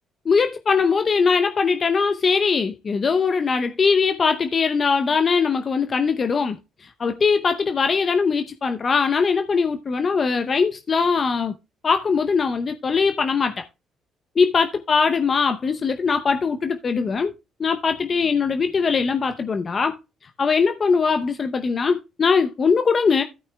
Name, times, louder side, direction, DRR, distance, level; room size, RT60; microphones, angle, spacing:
voice 1, 0.3-11.5 11.8-13.6 14.4-17.3 17.6-20.0 20.4-23.2, left 5 dB, 45° left, 0.7 m, -21 dB
16.0 x 5.6 x 2.3 m
supercardioid pair, 70°, 0 cm